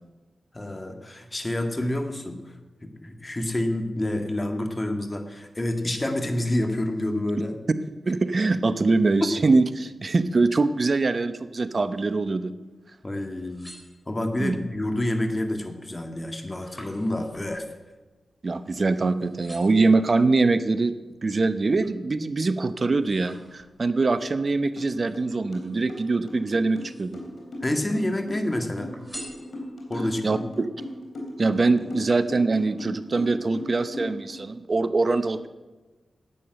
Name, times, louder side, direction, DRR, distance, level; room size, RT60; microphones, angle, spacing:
voice 1, 0.5-2.4 2.8-7.6 9.2-9.3 13.0-13.7 14.1-17.7 27.6-28.9 29.9-30.4, left 1 dB, 30° left, 5 dB, 1.9 m, -28 dB
voice 2, 8.1-12.5 14.4-14.6 18.4-20.9 21.2-27.2 30.2-30.7 31.4-35.5, right 3 dB, 50° right, 12 dB, 0.8 m, -23 dB
sound 1, 13.4-14.5 15.1-15.5 15.8-18.9 19.2-19.9 20.6-22.0 22.5-24.0 24.9-26.0 26.6-27.4 27.7-28.4 28.9-30.0 30.5-30.6, equal, 15° left, 4.0 m, -48 dB
sound 2, 24.8-24.9 25.1-34.4, left 1 dB, 70° left, 3.6 m, -37 dB
11.0 x 8.7 x 7.8 m, 1.2 s
cardioid pair, 45°, 0 cm